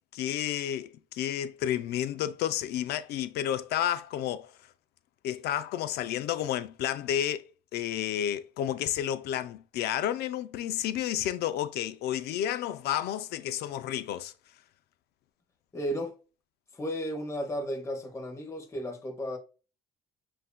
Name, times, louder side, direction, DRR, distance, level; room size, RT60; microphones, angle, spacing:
voice 1, 0.1-4.5 5.2-14.3, left 11 dB, 75° left, 0.4 m, -31 dB
voice 2, 15.7-16.1 16.7-19.4, equal, 15° left, 0.9 m, -34 dB
7.5 x 2.6 x 2.2 m
cardioid pair, 110°, 17 cm